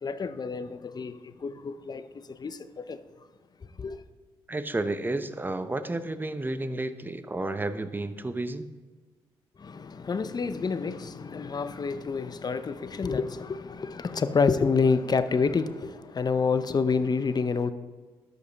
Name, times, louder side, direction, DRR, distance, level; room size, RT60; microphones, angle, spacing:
voice 1, 0.0-3.0 3.8-4.0 9.6-17.7, left 5 dB, 40° left, 0.7 m, -28 dB
voice 2, 4.5-8.7, right 2 dB, 20° right, 0.8 m, -31 dB
13.0 x 5.4 x 4.0 m
supercardioid pair, 55°, 11 cm